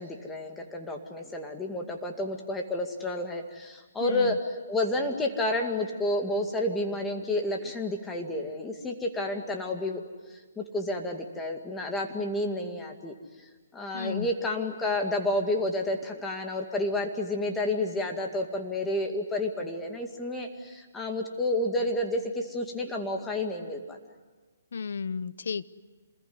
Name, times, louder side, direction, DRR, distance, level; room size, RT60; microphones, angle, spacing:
voice 1, 0.0-4.4 4.7-10.0 10.6-13.1 13.7-24.0, left 1 dB, 10° left, 3 dB, 2.2 m, -30 dB
voice 2, 4.0-4.4 13.9-14.3 24.7-25.6, left 5 dB, 70° left, 17 dB, 0.8 m, -33 dB
27.0 x 21.0 x 9.6 m, 1.3 s
hypercardioid pair, 150°, 0 cm